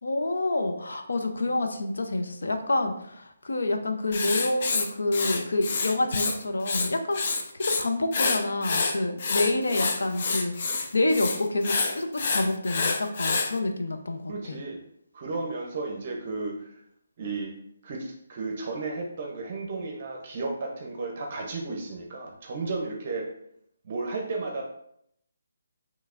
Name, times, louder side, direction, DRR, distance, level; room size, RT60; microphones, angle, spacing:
voice 1, 0.0-7.2 7.5-14.6, left 2 dB, 90° left, 5 dB, 0.6 m, -28 dB
Writing, 4.1-6.4 6.6-7.8 8.1-13.5, left 4 dB, 40° left, 0.4 m, -27 dB
voice 2, 14.3-14.8 15.1-16.7 17.2-17.5 17.8-23.3 23.8-24.6, right 3 dB, 35° right, 1 dB, 0.6 m, -33 dB
5.6 x 3.1 x 2.5 m, 0.74 s
hypercardioid pair, 170°, 0 cm